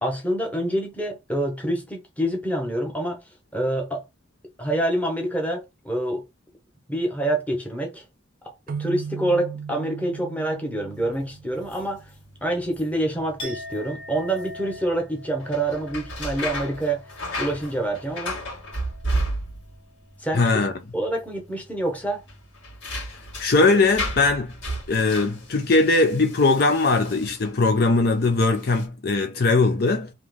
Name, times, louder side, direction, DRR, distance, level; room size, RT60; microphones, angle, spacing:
voice 1, 0.0-4.0 4.6-6.2 6.9-8.0 8.4-8.5 8.8-12.1 12.4-18.4 20.2-20.6 20.9-22.2, right 1 dB, 5° left, 1.1 m, -27 dB
sound 1, 8.7-12.2, right 6 dB, 45° right, 0.4 m, -36 dB
sound 2, 10.9-27.9 28.5-28.8, equal, 75° left, 2.0 m, -34 dB
Chink clink, 13.4-19.3 19.6-20.0, left 1 dB, 25° left, 1.7 m, -42 dB
voice 2, 20.3-20.7 23.4-24.6 24.9-30.1, left 3 dB, 50° left, 0.5 m, -20 dB
3.2 x 3.0 x 3.8 m
head